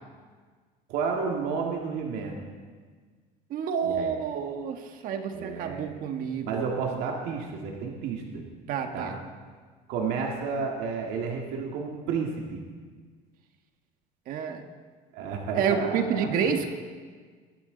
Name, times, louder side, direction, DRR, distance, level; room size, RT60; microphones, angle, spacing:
voice 1, 0.9-2.4 3.8-4.1 5.3-5.9 6.4-8.4 8.9-9.1 9.9-12.6 15.1-16.3, right 5 dB, 70° right, 0 dB, 2.1 m, -31 dB
voice 2, 3.5-6.6 8.7-9.2 14.3-14.6 15.6-16.8, right 7 dB, 55° right, 5 dB, 1.5 m, -29 dB
22.5 x 12.0 x 4.0 m, 1.6 s
cardioid pair, 140°, 17 cm